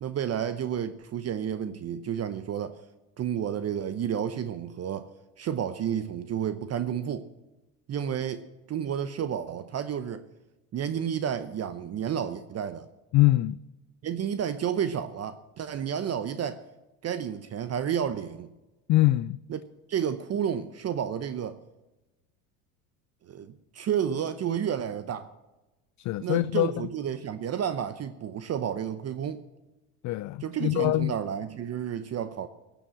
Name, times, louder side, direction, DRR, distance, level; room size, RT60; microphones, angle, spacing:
voice 1, 0.0-2.8 3.2-5.1 5.4-7.3 7.9-10.2 10.7-12.9 14.0-16.6 17.0-18.5 19.5-19.6 19.9-21.6 23.3-25.3 26.2-29.4 30.4-32.5, right 9 dB, 35° right, 11 dB, 0.8 m, -31 dB
voice 2, 13.1-13.6 18.9-19.4 26.0-26.9 30.0-31.1, left 17 dB, 45° left, 17 dB, 0.4 m, -24 dB
17.0 x 7.1 x 7.5 m, 1.1 s
hypercardioid pair, 85°, 43 cm